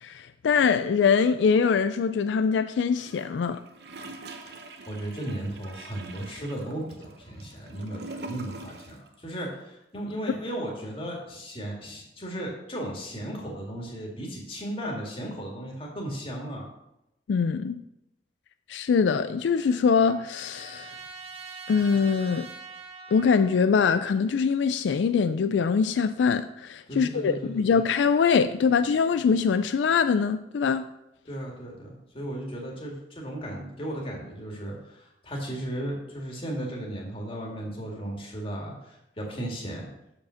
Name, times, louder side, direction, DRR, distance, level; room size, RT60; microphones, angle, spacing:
voice 1, 0.0-3.6 17.3-17.8 18.7-20.9 21.7-22.5 23.1-30.9, left 6 dB, 80° left, 0.3 m, -23 dB
Gurgling / Toilet flush, 3.0-9.1 9.3-9.4, right 3 dB, 65° right, 0.8 m, -43 dB
voice 2, 4.9-16.7 26.9-27.8 31.3-39.9, right 1 dB, 30° left, 1.9 m, -35 dB
Trumpet, 18.9-23.7, right 3 dB, 30° right, 2.0 m, -44 dB
7.1 x 5.2 x 5.7 m
head